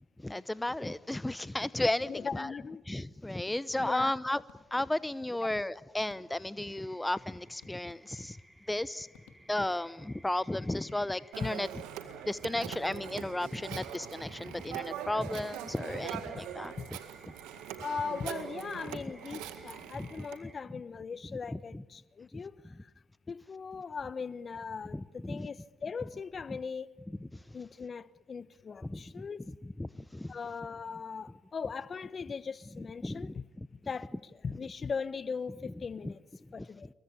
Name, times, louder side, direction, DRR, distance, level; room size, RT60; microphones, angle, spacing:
voice 1, 0.2-2.5 2.9-4.4 4.7-8.4 8.7-9.1 9.5-11.7 12.2-16.7 20.0-20.2 21.5-21.8 22.3-22.4 24.9-25.5 27.2-27.5 28.8-29.3 29.8-30.3 32.8-33.7 35.6-35.7 36.0-36.1, left 1 dB, 15° left, 0.8 m, -34 dB
voice 2, 2.1-2.8 3.8-4.1 11.4-11.5 16.8-16.9 17.8-22.9 23.3-26.9 27.5-29.5 30.3-33.4 33.9-36.2 36.5-36.9, left 5 dB, 45° left, 1.1 m, -39 dB
sound 1, 4.5-5.0 6.1-6.6 7.6-8.5 9.1-9.9 10.7-11.4 12.0-12.6, left 9 dB, 80° left, 2.7 m, -63 dB
sound 2, 6.6-20.6, right 1 dB, 5° right, 4.5 m, -59 dB
Telephone, 11.3-20.4, right 10 dB, 80° right, 1.9 m, -42 dB
28.0 x 23.0 x 8.7 m
hypercardioid pair, 50°, 0 cm